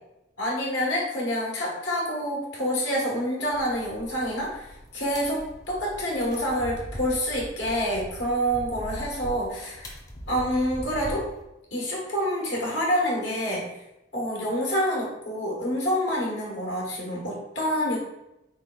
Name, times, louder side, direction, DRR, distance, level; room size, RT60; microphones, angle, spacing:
voice 1, 0.4-9.9 10.3-11.3 11.7-13.7 14.1-18.0, equal, 90° left, -4 dB, 1.2 m, -27 dB
sound 1, 3.5-11.4, equal, 20° left, 0.5 m, -41 dB
4.0 x 3.4 x 2.3 m, 0.92 s
head